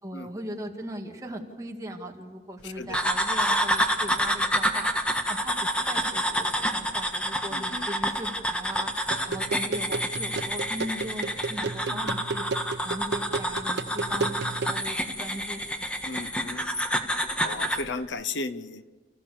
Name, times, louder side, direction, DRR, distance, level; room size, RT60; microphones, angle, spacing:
voice 1, 0.0-8.9 9.3-12.5 12.8-15.9, equal, 20° right, 2 dB, 2.1 m, -39 dB
voice 2, 2.6-3.0 7.5-7.9 11.8-12.1 16.1-16.7 17.3-18.8, left 3 dB, 75° left, 14 dB, 0.9 m, -35 dB
sound 1, 2.9-17.9, equal, 5° left, 1.5 m, -28 dB
sound 2, 9.1-14.8, right 3 dB, 65° right, 0.9 m, -33 dB
30.0 x 15.5 x 7.0 m, 1.3 s
head